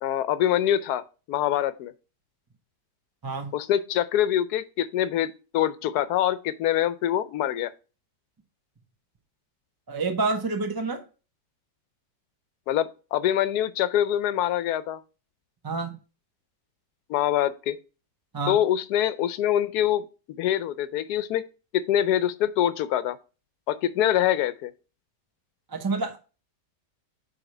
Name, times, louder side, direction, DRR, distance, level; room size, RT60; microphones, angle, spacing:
voice 1, 0.0-1.0 1.3-1.9 3.5-7.7 12.7-15.0 17.1-17.8 18.5-20.1 20.4-21.4 21.7-23.2 23.7-24.7, left 11 dB, 75° left, 1.1 m, -24 dB
voice 2, 9.9-11.0 15.6-15.9 18.3-18.6 25.7-26.2, right 3 dB, 20° right, 0.6 m, -28 dB
5.0 x 4.7 x 6.1 m
omnidirectional pair, 1.8 m